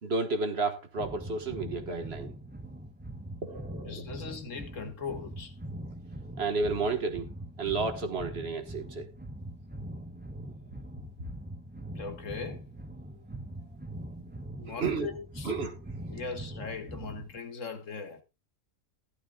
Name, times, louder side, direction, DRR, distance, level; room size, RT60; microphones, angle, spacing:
voice 1, 0.0-2.3 3.4-4.0 6.4-7.3 7.6-9.1 14.7-15.1 15.4-15.8, right 3 dB, 50° right, 1.6 m, -31 dB
sound 1, 1.0-17.4, right 1 dB, 10° right, 0.6 m, -42 dB
voice 2, 3.8-5.5 12.0-12.7 14.6-15.5 16.1-18.2, left 5 dB, 65° left, 1.8 m, -39 dB
14.5 x 11.5 x 2.3 m
omnidirectional pair, 1.4 m